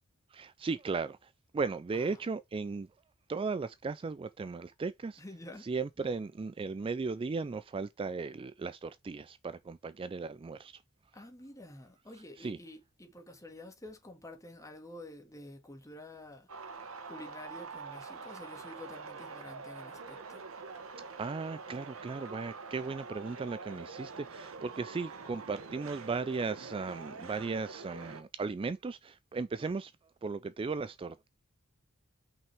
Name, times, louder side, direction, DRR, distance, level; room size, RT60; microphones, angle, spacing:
voice 1, 0.3-2.9 3.3-5.2 5.6-10.8 12.1-12.6 21.2-29.9 30.2-31.3, right 4 dB, 25° right, 0.3 m, -36 dB
voice 2, 5.2-5.7 11.1-16.5 17.1-20.4, left 1 dB, 15° left, 1.9 m, -49 dB
sound 1, 16.5-28.2, right 4 dB, 75° right, 1.2 m, -45 dB
5.6 x 5.5 x 3.5 m
head